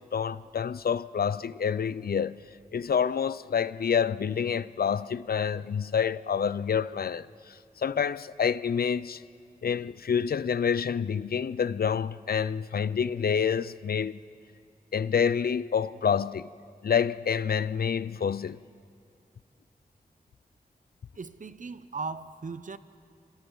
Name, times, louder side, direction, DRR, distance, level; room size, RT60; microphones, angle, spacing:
voice 1, 0.0-2.4 2.7-9.2 9.6-14.2 14.9-16.5 16.8-18.6, left 7 dB, 80° left, 0.5 m, -28 dB
voice 2, 21.2-22.8, right 4 dB, 55° right, 0.7 m, -37 dB
28.0 x 26.0 x 4.0 m
wide cardioid pair, 70°, 16 cm